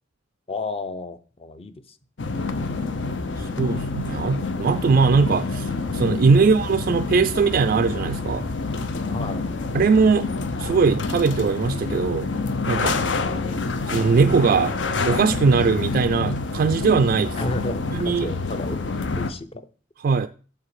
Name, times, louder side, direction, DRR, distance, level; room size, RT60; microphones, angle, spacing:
voice 1, 0.5-1.8 9.1-9.6 13.2-13.8 17.3-18.8 19.2-19.7, left 2 dB, 30° left, 0.6 m, -33 dB
sound 1, 2.2-19.3, left 3 dB, 70° left, 0.7 m, -27 dB
voice 2, 3.4-8.5 9.7-10.3 10.6-12.3 12.7-13.0 13.9-14.7 15.1-17.4 17.9-18.3 20.0-20.3, right 5 dB, 50° right, 0.3 m, -20 dB
7.4 x 6.7 x 4.8 m
head